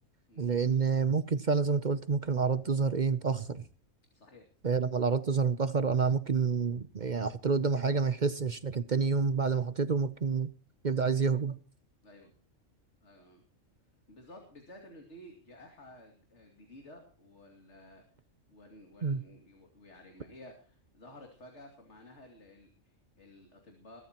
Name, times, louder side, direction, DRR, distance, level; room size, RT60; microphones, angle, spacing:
voice 1, 0.4-3.6 4.6-10.5 10.8-11.6 19.0-19.2, right 5 dB, 45° right, 14 dB, 0.7 m, -28 dB
voice 2, 4.1-4.7 12.0-12.3 13.0-13.4 14.1-18.0 18.5-24.0, left 1 dB, 60° left, 3 dB, 2.9 m, -53 dB
22.0 x 13.0 x 3.0 m, 0.40 s
omnidirectional pair, 1.4 m